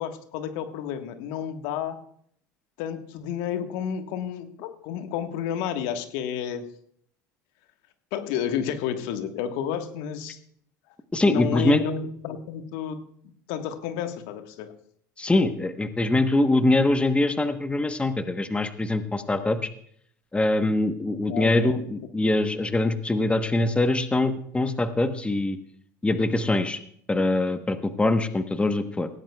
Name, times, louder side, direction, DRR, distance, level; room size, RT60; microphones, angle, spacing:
voice 1, 0.0-2.0 2.8-6.7 8.1-10.4 11.2-14.7 21.3-21.7, left 9 dB, 65° left, 7 dB, 1.4 m, -31 dB
voice 2, 11.1-11.8 15.2-19.7 20.3-25.6 26.0-26.8 27.1-29.1, left 2 dB, 10° left, 9 dB, 1.1 m, -23 dB
18.0 x 16.5 x 2.3 m, 0.66 s
hypercardioid pair, 75°, 10 cm